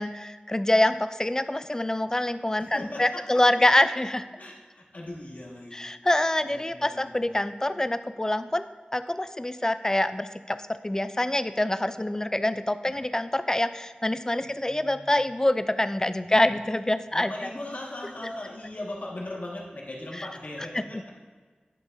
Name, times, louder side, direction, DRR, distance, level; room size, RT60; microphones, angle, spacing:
voice 1, 0.0-4.2 5.7-8.6 8.9-17.3, left 1 dB, 20° left, 12 dB, 0.3 m, -25 dB
voice 2, 2.6-3.4 4.3-5.9 6.4-7.4 12.9-13.0 14.4-15.3 16.5-16.6 17.1-21.2, left 1 dB, 65° left, -3 dB, 1.6 m, -39 dB
10.5 x 6.3 x 2.6 m, 1.5 s
wide cardioid pair, 70°, 3 cm